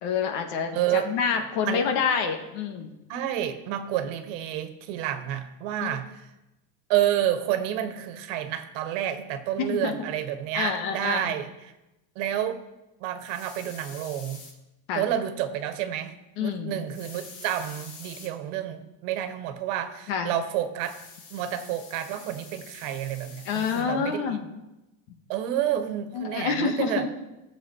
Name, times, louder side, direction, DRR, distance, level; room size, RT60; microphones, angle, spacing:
voice 1, 0.0-2.9 5.8-6.0 9.6-9.9 10.5-11.3 14.9-15.0 16.4-16.8 20.1-20.3 23.5-24.5 26.1-27.1, left 6 dB, 85° left, 5 dB, 1.8 m, -27 dB
voice 2, 0.7-1.9 3.1-6.3 6.9-11.5 12.1-12.6 13.0-14.4 14.9-21.0 21.3-24.4 25.3-27.1, right 11 dB, 80° right, 9 dB, 1.4 m, -29 dB
sound 1, 13.2-14.5 16.9-18.3 20.8-23.8, left 4 dB, 65° left, 3.8 m, -46 dB
16.0 x 7.5 x 4.6 m, 0.98 s
cardioid pair, 170°, 37 cm